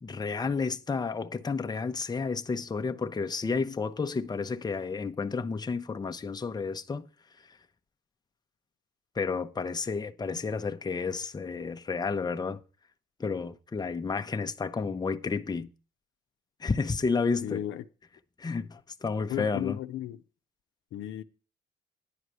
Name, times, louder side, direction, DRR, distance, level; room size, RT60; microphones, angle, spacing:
voice 1, 0.0-7.1 9.2-12.6 13.2-15.7 16.6-17.6 18.4-19.8, left 4 dB, 20° left, 0.7 m, -31 dB
voice 2, 17.4-17.8 19.3-20.2 20.9-21.2, left 12 dB, 80° left, 0.7 m, -34 dB
10.5 x 4.8 x 7.9 m
cardioid pair, 90°, 20 cm